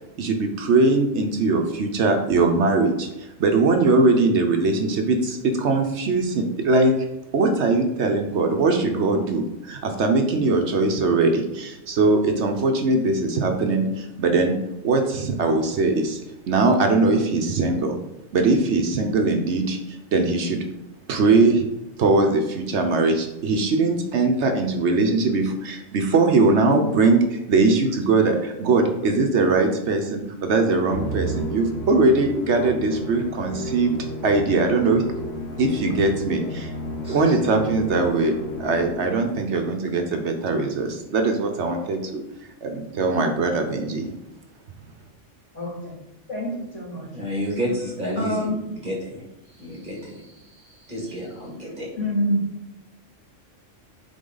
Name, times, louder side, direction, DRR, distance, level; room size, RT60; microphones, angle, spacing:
voice 1, 0.2-6.9 7.3-14.5 14.8-16.2 16.5-18.0 18.3-20.6 21.1-21.7 22.0-34.0 34.2-35.0 35.6-36.7 37.1-42.2 42.6-44.1, right 3 dB, 65° right, 4 dB, 1.0 m, -21 dB
Musical instrument, 30.9-39.4, equal, 60° left, 1.6 m, -32 dB
voice 2, 45.5-45.9 46.3-47.1 48.1-48.6 52.0-52.4, equal, 75° left, -4 dB, 2.8 m, -26 dB
voice 3, 47.1-48.5 48.8-49.2 49.5-51.9, equal, 40° right, -3 dB, 2.3 m, -30 dB
9.1 x 3.7 x 3.9 m, 0.92 s
omnidirectional pair, 1.3 m